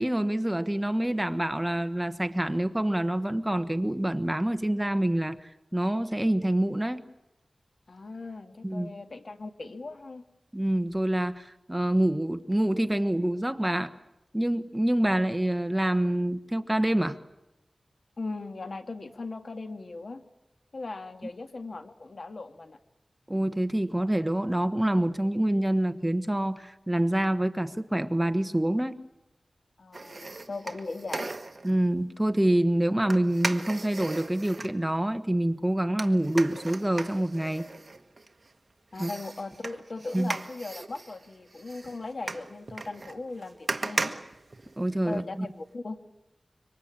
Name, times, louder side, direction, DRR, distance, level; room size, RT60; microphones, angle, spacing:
voice 1, 0.0-7.0 8.6-8.9 10.5-13.9 14.3-17.2 23.3-29.0 31.6-37.7 39.0-39.1 40.1-40.4 44.8-45.5, right 1 dB, 10° right, 10 dB, 1.2 m, -26 dB
voice 2, 7.9-10.3 18.2-20.2 20.7-22.8 29.8-31.3 38.9-44.1 45.0-46.0, left 3 dB, 65° left, 7 dB, 1.8 m, -38 dB
sound 1, 29.9-31.7 33.1-34.8 36.0-38.5 38.9-45.2 45.5-45.6, right 3 dB, 50° right, 1.5 m, -37 dB
26.0 x 24.5 x 8.8 m, 0.93 s
wide cardioid pair, 75°, 0 cm